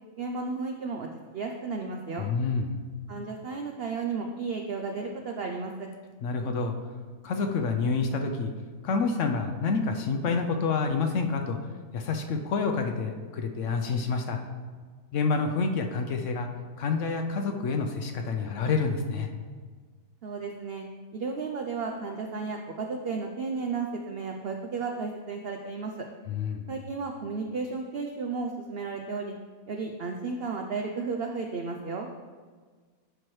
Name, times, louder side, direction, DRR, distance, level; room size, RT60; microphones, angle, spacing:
voice 1, 0.2-1.1 1.3-2.3 3.1-5.9 20.2-20.8 21.1-25.9 26.7-29.3 29.7-32.1, right 4 dB, 70° right, 3 dB, 0.5 m, -33 dB
voice 2, 2.2-2.8 6.2-6.7 7.2-8.5 8.8-11.6 11.9-14.4 15.1-16.5 16.8-19.3 26.3-26.7, left 4 dB, 65° left, 4 dB, 0.8 m, -28 dB
11.5 x 4.5 x 3.1 m, 1.5 s
omnidirectional pair, 1.6 m